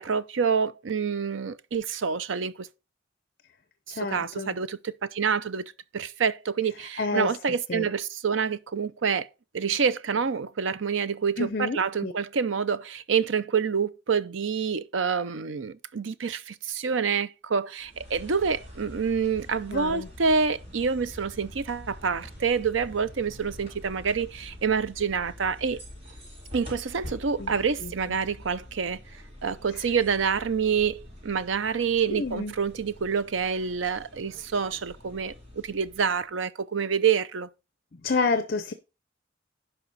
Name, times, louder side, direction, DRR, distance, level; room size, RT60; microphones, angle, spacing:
voice 1, 0.0-2.7 3.9-9.3 9.5-25.8 26.5-29.0 29.4-37.5, right 6 dB, 85° right, 0.6 m, -27 dB
voice 2, 3.9-4.5 7.0-7.3 7.7-7.9 11.4-12.1 19.7-20.1 27.4-27.5 27.8-27.9 32.1-32.5 37.9-38.7, left 3 dB, 50° left, 0.7 m, -29 dB
sound 1, 17.8-36.3, left 1 dB, 30° right, 4.2 m, -46 dB
11.0 x 5.5 x 4.1 m
head